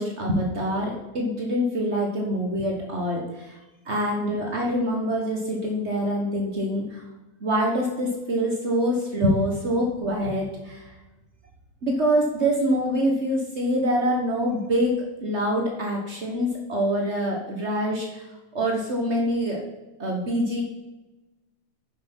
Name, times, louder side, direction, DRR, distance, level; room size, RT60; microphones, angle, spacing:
voice 1, 0.0-3.6 3.8-7.0 7.4-10.9 11.8-18.3 18.5-19.6 20.0-20.6, equal, 85° right, 0 dB, 0.6 m, -25 dB
10.5 x 5.8 x 5.4 m, 1.1 s
omnidirectional pair, 3.5 m